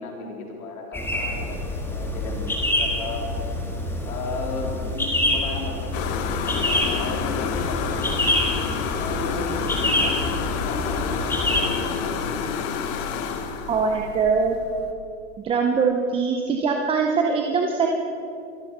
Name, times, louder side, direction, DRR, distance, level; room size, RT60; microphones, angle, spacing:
voice 1, 0.0-3.5 4.1-8.3 8.7-12.2, left 3 dB, 65° left, 0 dB, 3.8 m, -35 dB
sound 1, 0.9-11.6, left 1 dB, 5° left, 1.7 m, -26 dB
sound 2, 5.9-14.9, left 6 dB, 30° left, 1.1 m, -29 dB
voice 2, 13.7-14.6 15.4-17.9, right 5 dB, 10° right, 2 dB, 0.6 m, -22 dB
24.5 x 8.2 x 5.6 m, 2.5 s
hypercardioid pair, 135°, 47 cm